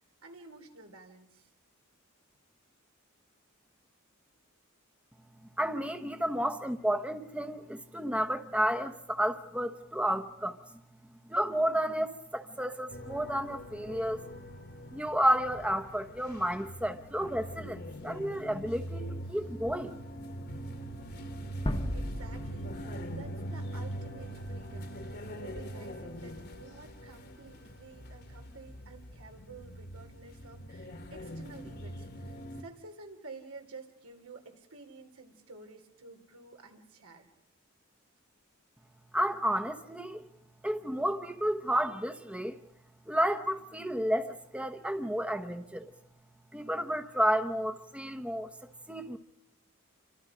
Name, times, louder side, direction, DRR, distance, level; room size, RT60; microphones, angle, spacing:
voice 1, 0.2-1.5 21.5-37.3, right 3 dB, 85° right, 3.4 m, -51 dB
voice 2, 5.6-14.3 14.9-20.0 39.1-40.3 40.6-42.6 43.1-45.9 46.5-49.2, equal, 5° right, 1.0 m, -31 dB
sound 1, 12.9-32.6, equal, 50° left, 1.7 m, -42 dB
sound 2, 21.7-24.6, left 1 dB, 25° left, 1.2 m, -37 dB
28.5 x 25.0 x 5.1 m
head